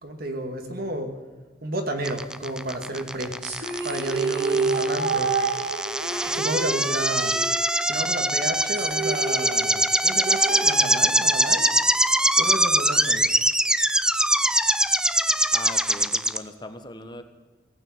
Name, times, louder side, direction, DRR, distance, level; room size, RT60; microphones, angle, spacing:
voice 1, 0.0-1.1 1.6-3.4 3.8-5.3 6.3-7.4 7.8-11.7 12.4-13.3, right 1 dB, 60° right, 5 dB, 2.3 m, -31 dB
sound 1, 2.0-16.4, right 1 dB, 5° right, 0.5 m, -23 dB
sound 2, 3.4-8.1 8.3-8.4 8.7-11.4, right 4 dB, 75° right, 4.1 m, -29 dB
voice 2, 15.5-17.2, left 2 dB, 25° left, 8 dB, 1.4 m, -39 dB
17.5 x 9.2 x 9.0 m, 1.4 s
head